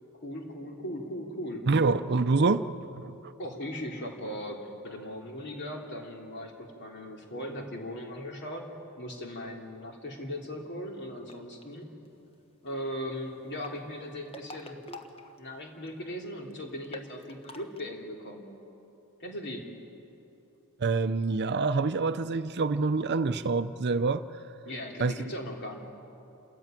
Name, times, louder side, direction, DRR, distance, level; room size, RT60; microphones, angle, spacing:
voice 1, 0.2-1.6 3.4-8.6 9.0-11.9 12.6-14.8 15.4-18.5 19.2-19.7 24.6-25.8, equal, 50° left, 1 dB, 3.0 m, -38 dB
voice 2, 1.7-2.7 3.0-3.3 20.8-24.3 25.0-25.1, right 4 dB, 50° right, 11 dB, 0.6 m, -26 dB
sound 1, 11.2-11.6 13.4-15.9 16.2-16.3 16.5-16.6 16.8-17.8, left 1 dB, 25° left, 1.2 m, -46 dB
28.5 x 14.0 x 9.1 m, 2.9 s
head